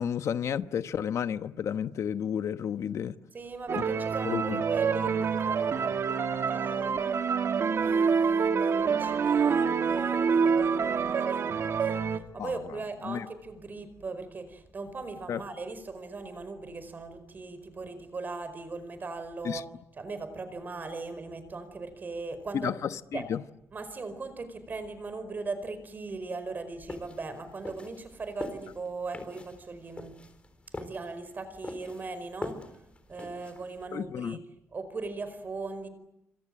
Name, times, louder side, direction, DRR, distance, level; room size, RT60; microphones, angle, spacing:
voice 1, 0.0-3.1 3.7-3.8 4.2-4.6 12.4-12.5 13.0-13.3 15.3-15.4 19.4-19.6 22.5-23.4 33.9-34.4, left 8 dB, 65° left, 1.1 m, -31 dB
voice 2, 3.3-7.4 7.8-22.8 23.1-23.4 23.7-30.2 30.8-32.8 33.1-34.4 34.7-35.9, right 3 dB, 35° right, 4.9 m, -39 dB
sound 1, 3.7-12.2, right 6 dB, 55° right, 1.7 m, -26 dB
sound 2, 26.9-33.8, left 2 dB, 20° left, 4.1 m, -43 dB
28.0 x 26.0 x 7.7 m
cardioid pair, 130°, 5 cm